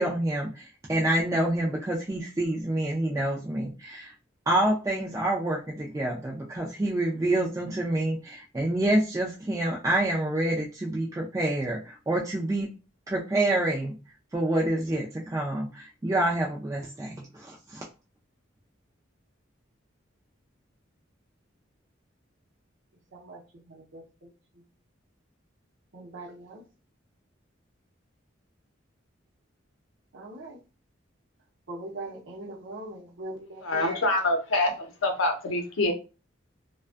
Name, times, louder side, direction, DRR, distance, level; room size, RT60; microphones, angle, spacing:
voice 1, 0.0-4.1 4.5-12.7 13.1-14.0 14.3-17.8, right 1 dB, 15° right, 0.3 m, -27 dB
voice 2, 23.1-24.3 25.9-26.6 30.1-30.6 31.7-34.1 34.6-34.7, right 2 dB, 70° right, 0.7 m, -41 dB
voice 3, 33.6-34.7 35.0-35.9, left 2 dB, 90° left, 0.6 m, -25 dB
2.3 x 2.2 x 2.4 m
head